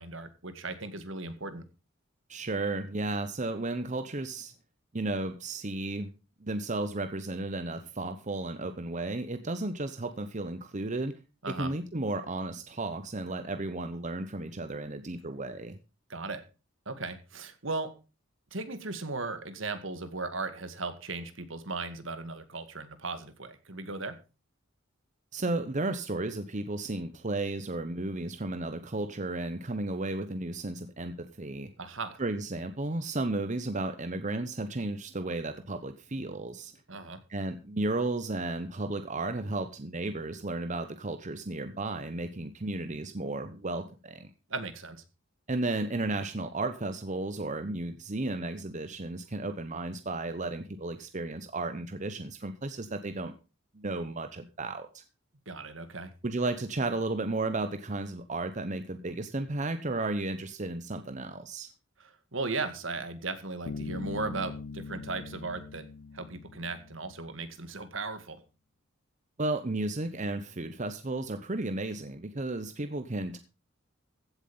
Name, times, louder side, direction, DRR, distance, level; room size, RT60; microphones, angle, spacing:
voice 1, 0.0-1.6 11.4-11.7 16.1-16.4 16.9-17.9 18.5-24.2 31.8-32.2 36.9-37.2 44.5-45.0 55.5-56.1 62.3-65.8 66.1-68.4, right 3 dB, 65° right, 10 dB, 2.0 m, -37 dB
voice 2, 2.3-4.5 4.9-6.1 6.4-11.2 11.5-15.8 25.3-31.7 32.2-36.7 37.3-44.3 45.5-53.3 53.7-55.0 56.2-61.7 69.4-73.4, right 2 dB, 35° right, 9 dB, 0.9 m, -33 dB
Bass guitar, 63.6-67.3, left 4 dB, 80° left, 0.6 m, -42 dB
15.5 x 8.0 x 5.4 m, 0.32 s
head